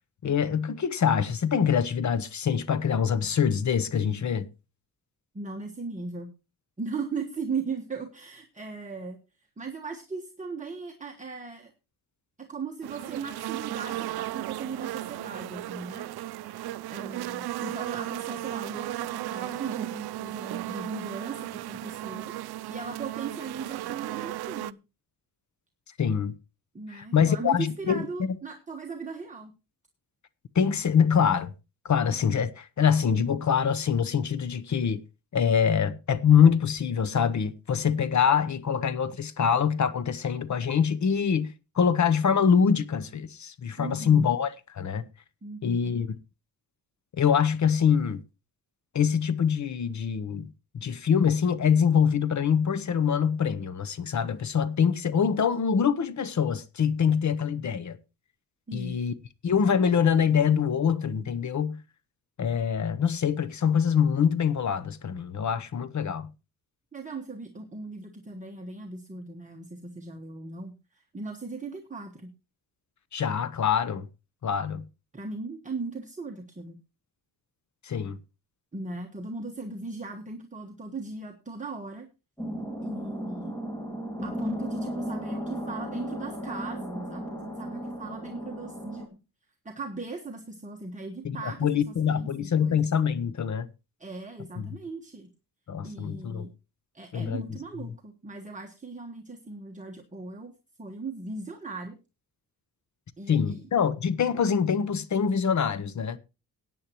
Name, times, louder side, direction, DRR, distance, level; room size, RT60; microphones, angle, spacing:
voice 1, 0.2-4.5 26.0-26.3 26.9-28.1 30.5-31.5 31.8-35.0 35.3-45.1 45.6-46.1 47.1-48.2 48.9-58.0 58.7-59.1 59.4-61.8 62.4-66.3 73.1-74.1 74.4-74.9 77.8-78.2 91.2-93.7 94.6-94.7 95.7-96.5 97.1-97.4 103.3-106.2, left 7 dB, 50° left, 0.9 m, -24 dB
voice 2, 5.3-6.3 6.8-11.7 12.4-22.3 22.7-24.8 26.7-29.5 43.8-44.3 45.4-45.9 58.7-59.0 66.9-72.3 75.1-76.8 78.7-82.1 82.8-83.6 84.2-89.2 89.6-92.8 94.0-95.3 95.8-96.5 96.9-100.5 100.8-102.0 103.2-103.7, right 4 dB, 20° right, 1.3 m, -38 dB
sound 1, 12.8-24.7, right 15 dB, 80° right, 0.5 m, -35 dB
sound 2, 82.4-89.1, equal, 10° left, 2.2 m, -35 dB
17.0 x 9.2 x 3.0 m
wide cardioid pair, 120°, 37 cm